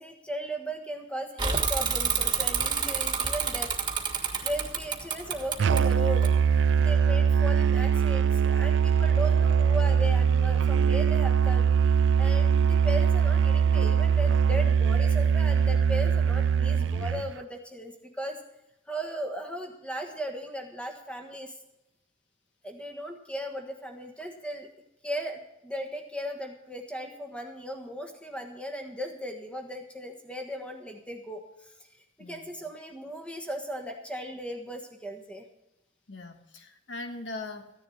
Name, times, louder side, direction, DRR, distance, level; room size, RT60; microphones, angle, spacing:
voice 1, 0.0-3.7 4.1-6.3 6.7-11.7 12.2-18.4 18.9-21.5 22.6-24.7 25.0-31.7 32.2-35.4, equal, 5° left, 4 dB, 1.4 m, -37 dB
Bicycle / Mechanisms, 1.4-6.8, right 6 dB, 25° right, 1.5 m, -29 dB
Musical instrument, 5.6-17.3, right 7 dB, 65° right, 0.3 m, -22 dB
voice 2, 32.2-32.5 36.1-37.8, left 2 dB, 60° left, 6 dB, 1.4 m, -41 dB
15.0 x 10.5 x 4.2 m, 0.90 s
head